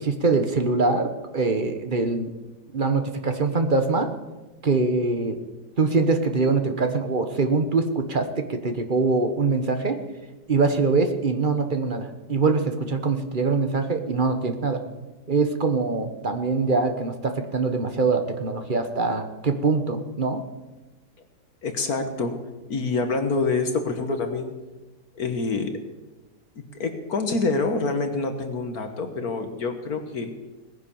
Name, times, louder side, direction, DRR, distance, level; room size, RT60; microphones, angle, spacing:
voice 1, 0.0-2.3 2.7-4.1 4.6-5.4 5.8-10.0 10.5-14.8 15.3-20.4, right 3 dB, 30° right, 7 dB, 1.3 m, -23 dB
voice 2, 21.6-22.4 22.7-24.5 25.2-25.7 26.7-30.3, left 3 dB, 60° left, 6 dB, 1.7 m, -26 dB
18.5 x 10.5 x 7.1 m, 1.1 s
omnidirectional pair, 1.9 m